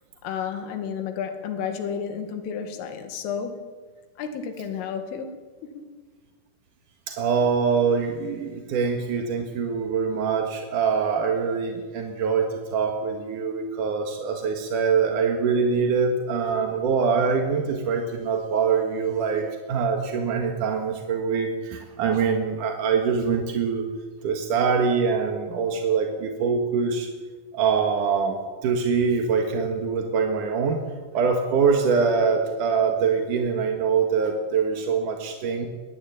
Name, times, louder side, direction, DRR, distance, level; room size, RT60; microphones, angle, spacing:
voice 1, 0.2-3.6 4.2-5.3 5.6-5.9, left 7 dB, 75° left, 6 dB, 4.6 m, -31 dB
voice 2, 7.1-23.8 24.2-27.1 27.5-30.8 31.1-35.7, right 5 dB, 60° right, 3 dB, 2.2 m, -24 dB
22.0 x 16.5 x 9.0 m, 1.4 s
omnidirectional pair, 5.9 m